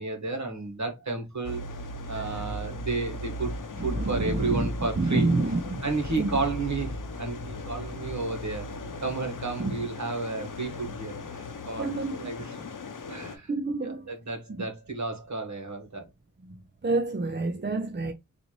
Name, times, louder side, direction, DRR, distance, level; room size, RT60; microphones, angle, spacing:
voice 1, 0.0-1.6 2.1-5.3 5.8-8.7 9.0-12.6 13.1-13.5 13.8-16.0, right 3 dB, 60° right, 1.5 m, -32 dB
sound 1, 1.4-13.4, left 1 dB, 70° left, 0.8 m, -37 dB
voice 2, 3.9-4.7 5.0-5.8 6.2-6.3 9.6-9.8 11.8-12.2 13.5-14.1 14.5-14.6 16.5-16.6 16.8-18.1, right 3 dB, 35° right, 0.6 m, -28 dB
4.2 x 2.7 x 3.1 m
cardioid pair, 40°, 33 cm